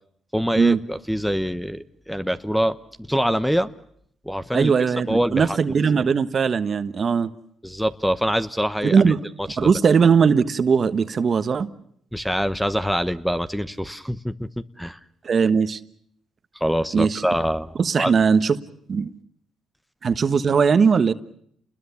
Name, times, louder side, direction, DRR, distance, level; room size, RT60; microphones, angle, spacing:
voice 1, 0.3-3.7 4.2-4.7 5.1-5.6 7.6-9.1 9.5-9.7 12.1-15.0 16.5-18.1, equal, ahead, 12 dB, 1.0 m, -25 dB
voice 2, 4.5-7.3 8.8-9.2 9.6-11.7 15.2-15.8 16.9-17.2 17.8-18.6 18.9-19.1 20.0-21.1, right 6 dB, 45° right, 12 dB, 1.3 m, -19 dB
29.0 x 21.0 x 7.1 m, 0.67 s
cardioid pair, 90°, 0 cm